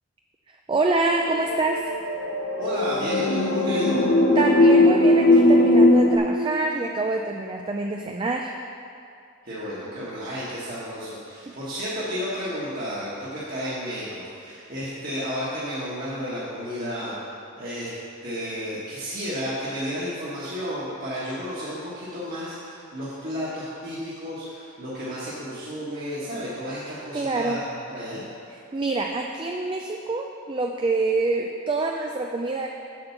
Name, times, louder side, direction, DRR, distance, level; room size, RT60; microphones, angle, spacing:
voice 1, 0.7-1.8 4.4-8.5 27.1-27.6 28.7-32.7, right 3 dB, 25° right, 2 dB, 0.3 m, -26 dB
sound 1, 1.3-6.2, left 1 dB, 55° left, 0.9 m, -19 dB
voice 2, 2.6-4.1 9.4-17.9 18.2-28.2, equal, 45° right, -10 dB, 1.6 m, -32 dB
7.7 x 5.2 x 7.2 m, 2.5 s
head